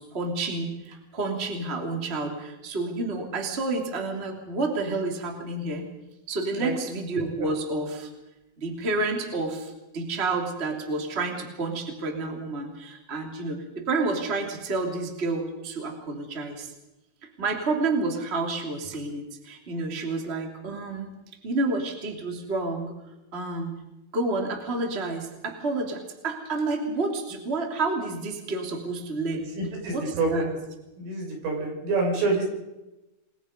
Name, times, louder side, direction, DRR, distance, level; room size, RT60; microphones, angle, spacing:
voice 1, 0.0-5.9 6.3-8.1 8.6-16.7 17.4-21.1 21.4-22.9 23.3-23.8 24.1-29.5 29.9-30.4, right 3 dB, 15° right, 2 dB, 2.5 m, -29 dB
voice 2, 29.6-30.5 31.0-32.4, right 3 dB, 75° right, 1 dB, 8.3 m, -27 dB
28.5 x 21.5 x 5.3 m, 1.0 s
omnidirectional pair, 5.8 m